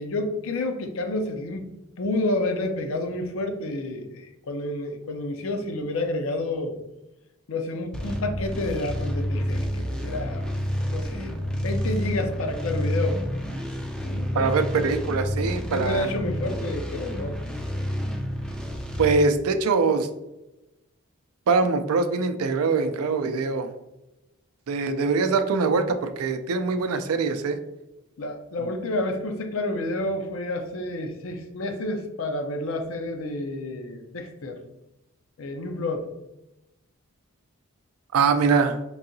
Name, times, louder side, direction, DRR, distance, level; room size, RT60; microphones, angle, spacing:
voice 1, 0.0-1.7 2.0-6.8 7.5-10.4 10.8-13.2 14.0-15.0 15.7-17.4 28.2-34.6 35.4-36.1, left 2 dB, 65° left, 5 dB, 0.5 m, -30 dB
sound 1, 7.9-19.1, equal, 5° left, 0.3 m, -29 dB
voice 2, 14.3-16.1 19.0-20.1 21.5-23.7 24.7-27.6 38.1-38.8, right 4 dB, 80° right, 9 dB, 0.4 m, -23 dB
4.7 x 2.8 x 2.6 m, 0.96 s
head